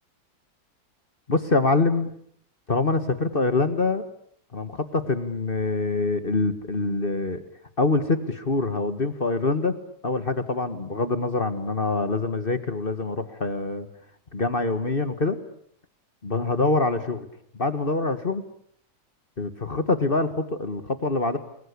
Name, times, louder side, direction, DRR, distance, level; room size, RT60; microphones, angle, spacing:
voice 1, 1.3-2.1 2.7-4.0 4.5-7.4 7.8-9.7 10.0-13.9 14.3-15.4 16.2-17.3 17.5-18.4 19.4-21.4, left 3 dB, 35° left, 12 dB, 1.8 m, -25 dB
29.0 x 21.5 x 8.4 m, 0.67 s
omnidirectional pair, 1.8 m